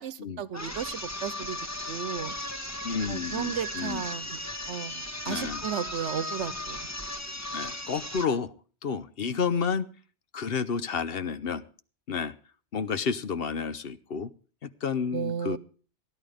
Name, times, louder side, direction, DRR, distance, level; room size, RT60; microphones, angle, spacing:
voice 1, 0.0-1.6 1.9-2.3 3.1-4.4 4.7-6.8 15.1-15.6, right 8 dB, 80° right, 17 dB, 1.1 m, -34 dB
sound 1, 0.5-8.4, left 1 dB, 15° left, 1.3 m, -36 dB
voice 2, 2.8-4.0 5.2-5.6 7.5-8.5 8.8-9.9 10.3-11.6 12.1-12.3 12.7-14.3 14.6-15.6, left 6 dB, 60° left, 13 dB, 1.0 m, -30 dB
16.0 x 11.0 x 5.0 m, 0.39 s
omnidirectional pair, 1.1 m